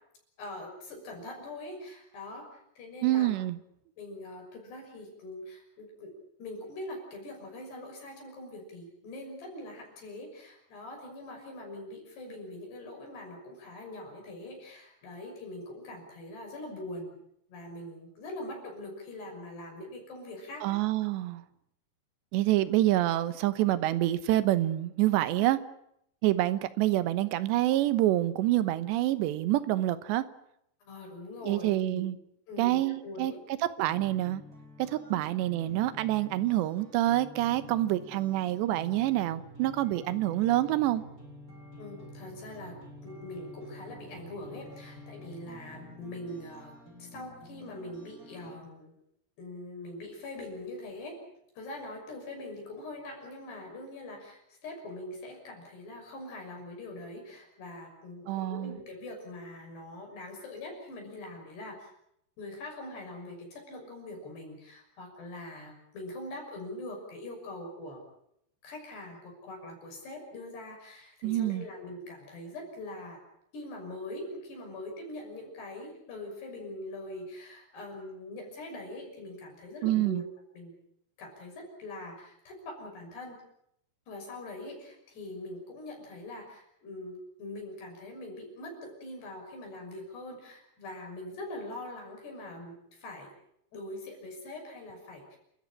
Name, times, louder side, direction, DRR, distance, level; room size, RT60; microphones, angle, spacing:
voice 1, 0.4-3.3 4.0-6.1 6.4-17.1 17.5-20.8 30.8-32.0 32.5-33.4 35.0-35.2 41.8-42.8 43.0-49.0 49.4-51.2 51.6-61.9 62.4-68.0 68.6-73.2 73.5-80.3 80.5-80.7 81.2-83.4 84.1-93.3 93.7-95.4, left 1 dB, 70° left, 1 dB, 8.3 m, -43 dB
voice 2, 3.0-3.6 20.6-21.4 22.3-25.6 26.2-30.2 31.4-32.2 32.6-33.3 33.8-34.4 34.8-41.0 58.3-58.8 71.2-71.7 79.8-80.2, right 15 dB, 80° right, 14 dB, 3.3 m, -27 dB
sound 1, 33.8-48.6, left 1 dB, 20° right, 6.1 m, -49 dB
29.5 x 14.0 x 9.9 m, 0.75 s
omnidirectional pair, 5.0 m